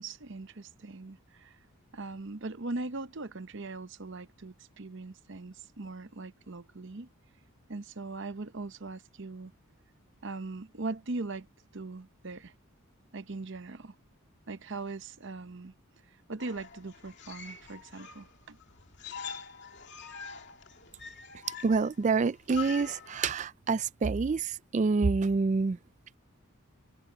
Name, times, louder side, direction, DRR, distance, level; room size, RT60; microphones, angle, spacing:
voice 1, 0.0-1.6 1.9-7.1 7.7-9.5 10.2-11.5 11.7-12.5 13.1-13.9 14.5-15.7 16.1-18.6, right 3 dB, 55° right, 0.8 m, -40 dB
sound 1, 16.4-23.4, left 6 dB, 50° left, 2.5 m, -45 dB
voice 2, 21.6-25.8, right 4 dB, 35° right, 0.3 m, -27 dB
open air
head